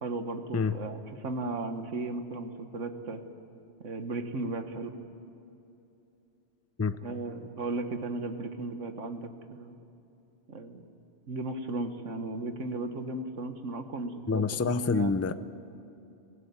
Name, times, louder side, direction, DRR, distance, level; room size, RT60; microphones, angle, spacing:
voice 1, 0.0-3.2 3.8-4.9 7.0-9.7 10.5-10.9 11.3-15.1, right 2 dB, 85° right, 8 dB, 1.7 m, -35 dB
voice 2, 14.3-15.3, left 5 dB, 25° left, 13 dB, 0.3 m, -27 dB
23.5 x 16.0 x 9.5 m, 2.8 s
omnidirectional pair, 1.2 m